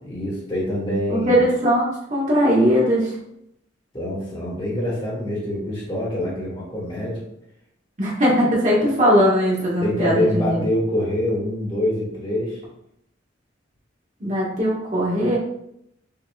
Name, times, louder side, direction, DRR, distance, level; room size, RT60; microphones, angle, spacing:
voice 1, 0.0-1.4 3.9-7.2 9.8-12.6, left 1 dB, 30° left, -5 dB, 1.5 m, -25 dB
voice 2, 1.1-3.1 8.0-10.6 14.2-15.4, equal, 40° right, -6 dB, 1.5 m, -19 dB
5.8 x 2.9 x 2.4 m, 0.78 s
head